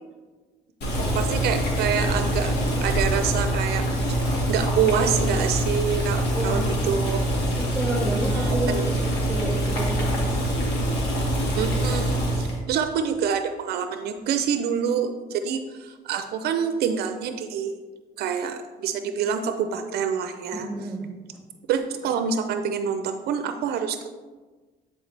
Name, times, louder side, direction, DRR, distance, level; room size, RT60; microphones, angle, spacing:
Boiling, 0.8-12.6, right 1 dB, 75° left, 2.0 m, -24 dB
voice 1, 1.1-2.5 2.8-3.8 4.1-7.2 8.0-8.9 11.6-17.8 18.2-20.7 21.7-24.1, right 7 dB, 70° right, 8 dB, 0.5 m, -27 dB
voice 2, 6.3-6.8 7.5-10.1 20.5-21.1, right 1 dB, ahead, 0 dB, 1.8 m, -30 dB
10.0 x 4.5 x 3.3 m, 1.3 s
cardioid pair, 110°, 17 cm